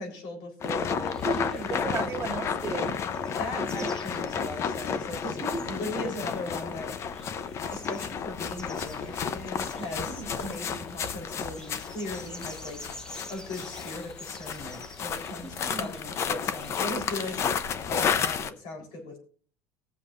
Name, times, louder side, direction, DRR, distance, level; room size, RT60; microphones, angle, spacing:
voice 1, 0.0-1.2 1.6-2.4 2.7-2.9 3.4-5.4 5.7-6.9 7.7-12.8 13.3-19.2, left 1 dB, 60° left, 4.1 m, -38 dB
sound 1, 0.6-18.5, left 7 dB, 35° left, 0.7 m, -32 dB
sound 2, 1.0-18.2, equal, 10° left, 1.1 m, -50 dB
voice 2, 1.2-3.0 3.5-3.9 5.4-5.9 10.1-10.5 15.4-16.0, right 3 dB, 25° right, 1.8 m, -35 dB
20.0 x 7.3 x 2.6 m
supercardioid pair, 130°, 8 cm